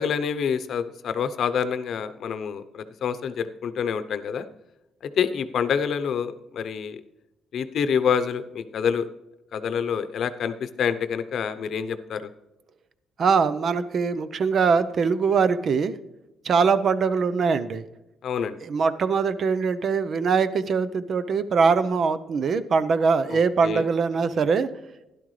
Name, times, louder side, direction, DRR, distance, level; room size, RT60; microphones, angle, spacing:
voice 1, 0.0-4.5 5.2-7.0 7.5-9.1 9.5-12.3 18.2-18.6 23.3-23.9, left 7 dB, 65° left, 12 dB, 0.8 m, -27 dB
voice 2, 13.2-16.0 16.4-17.8 18.6-24.7, right 5 dB, 55° right, 13 dB, 0.7 m, -22 dB
12.0 x 11.0 x 3.2 m, 0.96 s
cardioid pair, 90°, 0 cm